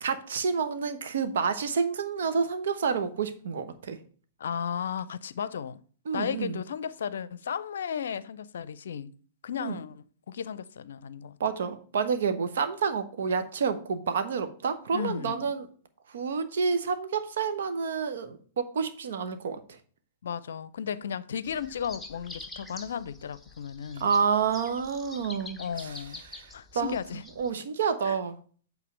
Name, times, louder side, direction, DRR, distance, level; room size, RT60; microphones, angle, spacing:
voice 1, 0.0-4.0 6.0-6.6 9.6-9.8 11.4-15.7 16.1-19.8 23.9-28.4, right 6 dB, 65° right, 1.1 m, -29 dB
voice 2, 4.4-5.8 6.1-9.1 9.4-11.4 14.9-15.4 20.2-24.1 25.6-26.2 26.5-27.2 28.0-28.2, left 8 dB, 65° left, 0.5 m, -34 dB
sound 1, 21.4-27.5, left 3 dB, 5° left, 1.0 m, -46 dB
8.5 x 4.0 x 6.8 m
figure-of-eight pair, 105°, 0 cm